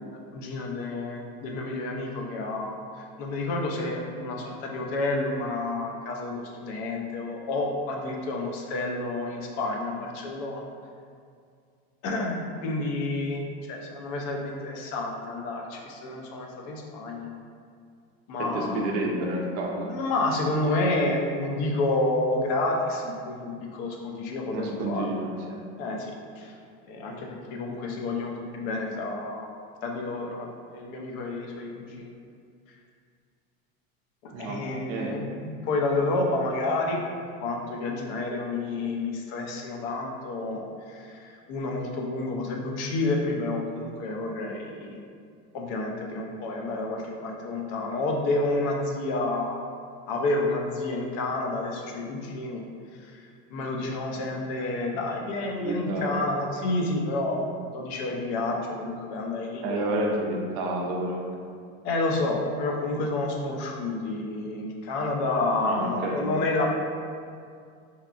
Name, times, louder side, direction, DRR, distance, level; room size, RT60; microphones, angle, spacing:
voice 1, 0.0-10.7 12.0-17.3 18.3-18.8 19.9-25.1 25.8-26.5 26.9-29.5 29.8-32.1 34.2-37.0 37.4-45.0 45.5-49.5 50.1-52.6 53.0-57.4 57.7-60.0 61.8-66.7, left 2 dB, 55° left, 0 dB, 0.4 m, -30 dB
voice 2, 18.4-19.9 24.5-25.6 34.3-34.6 34.9-35.1 55.6-56.1 59.6-61.2 65.6-66.2, right 1 dB, 50° right, 0 dB, 0.5 m, -29 dB
2.8 x 2.3 x 2.4 m, 2.3 s
cardioid pair, 155°, 31 cm